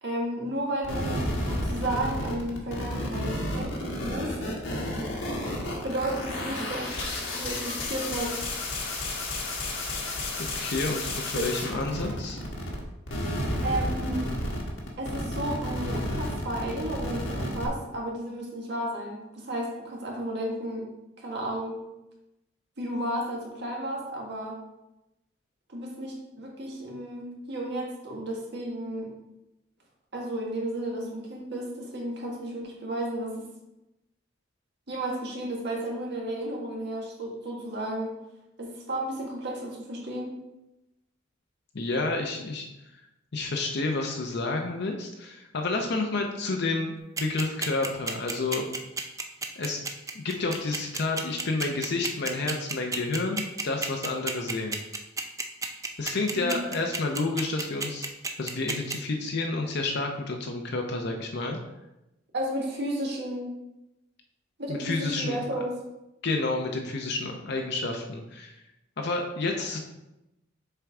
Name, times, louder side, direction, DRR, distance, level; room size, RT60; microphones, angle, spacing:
voice 1, 0.0-4.4 5.8-6.9 7.3-8.3 11.3-11.5 13.6-14.2 15.0-20.8 21.2-21.8 22.8-24.6 25.7-29.1 30.1-33.5 34.9-38.1 38.6-40.3 56.4-56.7 62.3-63.5 64.6-65.7, right 1 dB, 60° right, -2 dB, 1.7 m, -33 dB
sound 1, 0.8-12.8 13.1-17.7, left 1 dB, 75° left, 1.4 m, -32 dB
voice 2, 10.4-12.4 41.7-42.7 42.9-43.0 43.3-48.7 49.6-49.8 50.1-54.8 56.0-58.1 58.4-61.6 64.7-65.4 66.2-68.6 69.0-69.8, left 3 dB, 60° left, 2 dB, 0.7 m, -30 dB
sound 2, 47.2-58.9, right 4 dB, 15° right, 0.5 m, -31 dB
6.8 x 4.5 x 3.6 m, 0.94 s
head